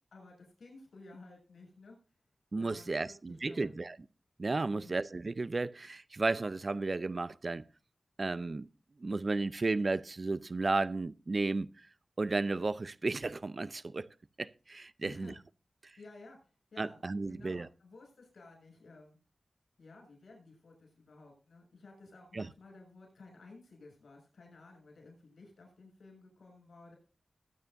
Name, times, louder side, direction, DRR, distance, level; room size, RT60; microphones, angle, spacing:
voice 1, 0.1-2.0 2.6-3.7 4.7-5.0 15.0-15.4 16.0-17.0 17.3-19.2 19.8-27.0, left 3 dB, 90° left, 7.3 m, -54 dB
voice 2, 2.5-4.0 4.4-7.6 8.2-8.7 9.0-11.9 12.2-14.1 14.4-15.3 15.8-15.9 16.8-17.7 22.3-22.5, right 3 dB, 45° right, 0.6 m, -33 dB
21.0 x 9.5 x 2.6 m
wide cardioid pair, 75°, 0 cm